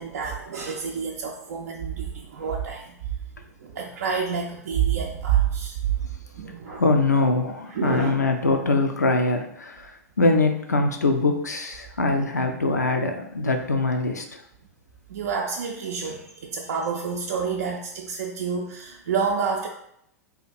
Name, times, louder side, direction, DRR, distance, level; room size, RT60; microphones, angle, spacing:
voice 1, 0.0-2.9 3.6-5.8 6.4-6.8 7.7-8.2 12.2-12.3 15.1-19.7, right 7 dB, 70° right, 0 dB, 0.4 m, -28 dB
voice 2, 6.7-14.4, left 3 dB, 90° left, 4 dB, 0.5 m, -23 dB
2.8 x 2.5 x 4.0 m, 0.75 s
figure-of-eight pair, 95°, 9 cm